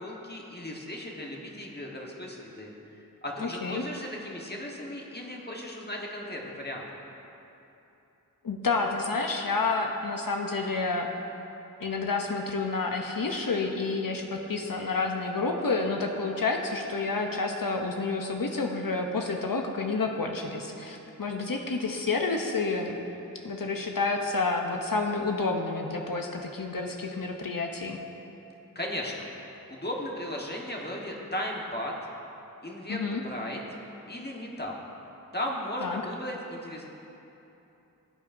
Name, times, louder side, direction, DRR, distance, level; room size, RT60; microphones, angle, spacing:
voice 1, 0.0-2.7 3.2-6.8 28.7-29.3 29.7-31.9 32.6-33.6 34.1-34.7 35.3-36.8, left 1 dB, 30° left, -2 dB, 1.3 m, -36 dB
voice 2, 3.4-3.8 8.4-11.1 11.8-23.0 23.4-28.0 32.9-33.2 35.8-36.1, left 3 dB, 70° left, 2 dB, 0.7 m, -29 dB
16.0 x 8.3 x 2.6 m, 3.0 s
wide cardioid pair, 40°, 35 cm